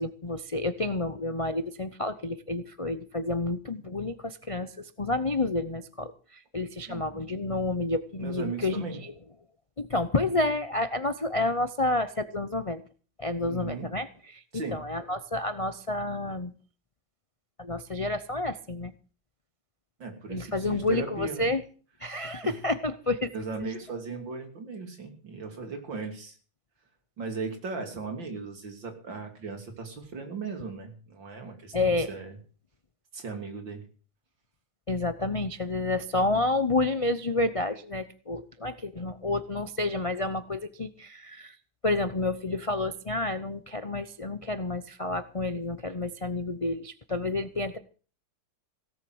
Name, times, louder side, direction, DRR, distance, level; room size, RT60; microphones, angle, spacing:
voice 1, 0.0-9.1 9.8-12.8 13.2-14.1 14.3-14.4 14.7-16.5 17.6-18.9 20.3-21.6 22.0-23.3 31.7-32.1 34.9-41.6 41.8-47.8, left 2 dB, 55° left, 11 dB, 0.3 m, -29 dB
voice 2, 6.9-7.3 8.2-9.0 13.5-13.9 14.5-14.8 20.0-21.5 22.4-22.5 23.3-26.4 27.2-32.4 33.1-33.8, right 4 dB, 75° right, 5 dB, 3.6 m, -37 dB
17.5 x 7.6 x 7.9 m, 0.40 s
omnidirectional pair, 2.1 m